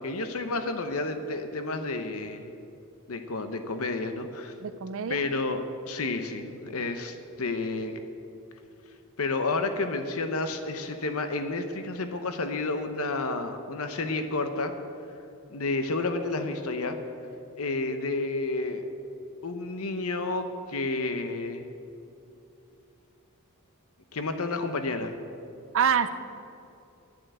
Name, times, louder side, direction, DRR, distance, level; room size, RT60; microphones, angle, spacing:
voice 1, 0.0-2.5 3.1-4.5 5.1-8.0 9.2-14.7 15.5-17.0 17.6-18.8 19.4-21.6 24.1-25.1, left 3 dB, 70° left, 7 dB, 0.9 m, -30 dB
voice 2, 4.6-5.2 25.7-26.1, right 7 dB, 65° right, 12 dB, 0.6 m, -25 dB
12.5 x 7.7 x 9.3 m, 2.7 s
head